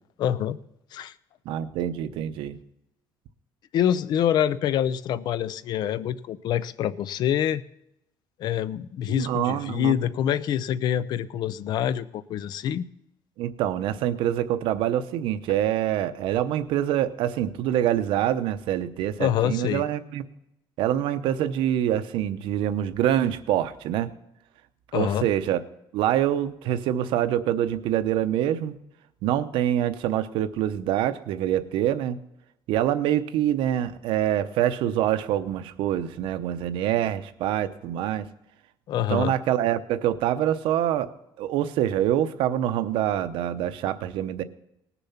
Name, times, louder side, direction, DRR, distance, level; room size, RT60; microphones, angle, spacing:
voice 1, 0.2-0.6 0.9-1.1 3.7-7.6 8.4-12.9 19.2-19.8 24.9-25.3 38.9-39.3, left 10 dB, 55° left, 17 dB, 0.5 m, -26 dB
voice 2, 1.5-2.6 9.1-10.0 13.4-20.2 20.8-24.1 24.9-25.6 25.9-28.7 29.2-32.2 32.7-38.2 39.1-41.1 41.4-44.4, right 11 dB, 80° right, 11 dB, 0.8 m, -25 dB
19.0 x 7.0 x 5.7 m, 0.82 s
cardioid pair, 165°, 9 cm